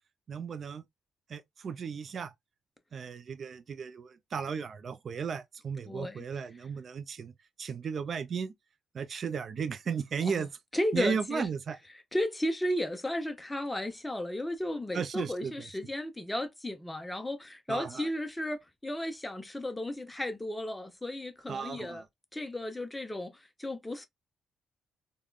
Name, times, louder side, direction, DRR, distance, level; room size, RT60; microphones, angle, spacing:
voice 1, 0.3-0.8 1.3-2.3 2.9-7.3 7.6-8.5 8.9-10.5 10.9-11.8 14.9-15.5 17.7-18.1 21.5-22.0, right 6 dB, 50° right, 0.4 m, -35 dB
voice 2, 5.9-6.3 10.2-10.5 10.7-11.5 12.1-22.0 22.3-24.1, left 1 dB, 10° left, 0.6 m, -34 dB
3.5 x 2.2 x 2.2 m
cardioid pair, 90°, 0 cm